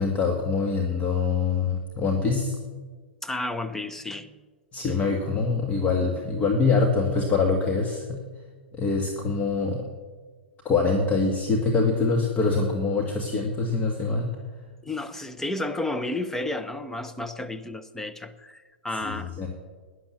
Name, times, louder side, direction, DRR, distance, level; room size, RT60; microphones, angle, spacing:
voice 1, 0.0-2.6 4.7-8.2 8.7-9.8 10.7-14.3 19.0-19.5, left 4 dB, 25° left, 1.8 m, -24 dB
voice 2, 3.2-4.3 14.8-19.3, left 2 dB, 5° left, 0.8 m, -32 dB
12.0 x 10.0 x 7.2 m
hypercardioid pair, 105°, 6 cm